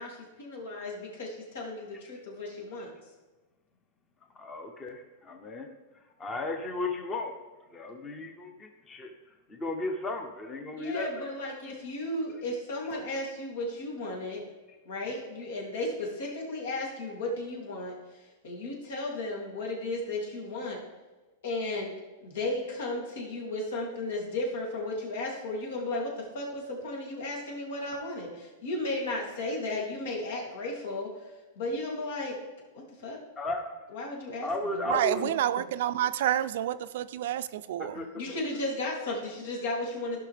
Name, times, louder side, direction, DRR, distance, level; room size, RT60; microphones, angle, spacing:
voice 1, 0.0-2.9 10.8-14.4 14.8-20.8 21.4-21.9 22.2-31.1 31.6-32.4 32.7-33.2 33.9-34.8 35.2-35.3 38.1-40.2, left 2 dB, 85° left, -2 dB, 2.8 m, -34 dB
voice 2, 4.4-5.7 6.2-7.3 7.7-9.1 9.5-11.3 33.4-33.8 34.4-35.2 37.8-38.3, left 2 dB, 15° left, 4 dB, 0.7 m, -35 dB
voice 3, 34.9-38.1, right 11 dB, 60° right, 13 dB, 0.4 m, -29 dB
15.0 x 5.7 x 3.4 m, 1.2 s
supercardioid pair, 170°, 0 cm